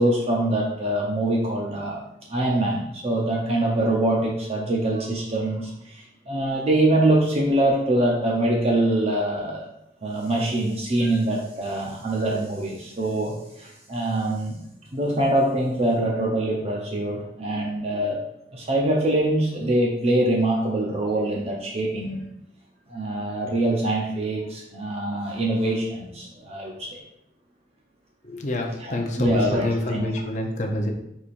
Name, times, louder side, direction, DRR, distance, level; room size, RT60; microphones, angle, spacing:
voice 1, 0.0-2.0 2.3-9.7 10.0-14.6 14.9-18.2 18.5-22.2 22.9-27.0 28.8-30.1, right 1 dB, 35° right, -2 dB, 0.6 m, -24 dB
voice 2, 28.2-30.9, left 1 dB, 40° left, 1 dB, 0.6 m, -26 dB
4.8 x 4.2 x 2.6 m, 0.80 s
head